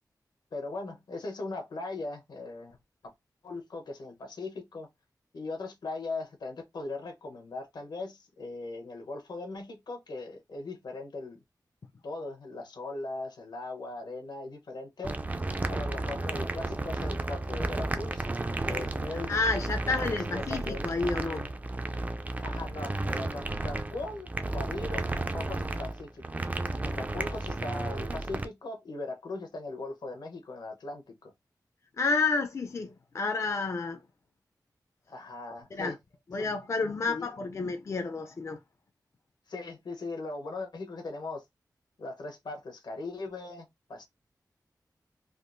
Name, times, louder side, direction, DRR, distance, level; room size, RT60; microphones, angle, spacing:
voice 1, 0.5-2.8 3.0-3.1 3.4-4.9 5.3-11.4 12.0-15.2 15.7-18.2 18.6-19.3 19.9-20.8 22.4-25.1 25.3-26.5 26.8-31.3 35.1-36.0 37.0-37.2 39.5-41.4 42.0-44.0, left 2 dB, 80° left, 0.9 m, -39 dB
sound 1, 15.0-28.4, right 2 dB, 20° right, 0.3 m, -33 dB
voice 2, 19.1-21.5 32.0-34.0 35.7-35.9 36.3-38.6, left 4 dB, 45° left, 0.4 m, -30 dB
3.5 x 2.3 x 2.5 m
wide cardioid pair, 125°, 7 cm